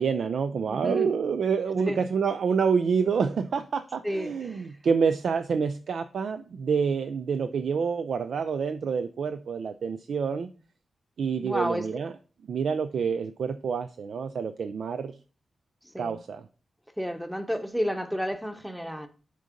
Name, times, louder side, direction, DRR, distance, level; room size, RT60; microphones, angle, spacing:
voice 1, 0.0-10.5 11.2-12.1 12.5-15.1 16.0-16.5, right 6 dB, 70° right, 0.4 m, -27 dB
voice 2, 0.7-1.1 1.7-2.0 4.0-4.7 11.4-11.9 15.9-16.2 17.0-19.1, equal, 5° right, 0.8 m, -31 dB
6.4 x 4.0 x 5.0 m
wide cardioid pair, 110°, 0 cm